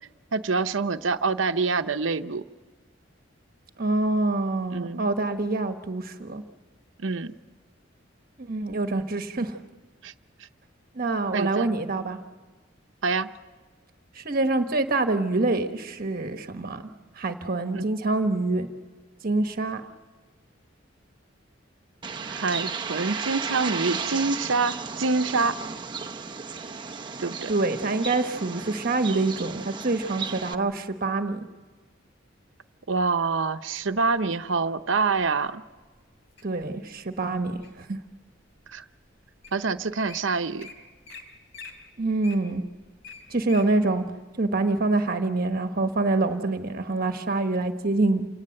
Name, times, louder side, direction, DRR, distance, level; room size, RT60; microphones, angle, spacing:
voice 1, 0.3-2.4 4.7-5.1 7.0-7.4 10.0-10.1 11.3-11.7 13.0-13.3 17.7-17.8 22.3-25.6 27.2-27.5 32.9-35.6 38.7-38.8 39.5-40.7, right 4 dB, 75° right, 10 dB, 0.8 m, -26 dB
voice 2, 3.8-6.4 8.4-9.6 10.9-12.2 14.1-16.8 17.2-18.7 19.2-19.8 27.5-31.4 36.4-38.0 42.0-42.6 43.3-44.0 44.4-48.3, right 2 dB, 50° right, 7 dB, 1.2 m, -26 dB
Bird, 22.0-30.5, right 5 dB, 25° right, 0.8 m, -34 dB
Wild animals, 33.7-34.5 35.2-35.5 36.0-36.4 36.9-37.9 38.5-38.6 39.2-39.3 39.4-39.6 39.9-40.2 40.6-40.7 41.0-41.2 41.5-43.7 44.1-44.2, left 5 dB, 65° left, 3.6 m, -45 dB
28.0 x 18.5 x 7.8 m, 1.4 s
head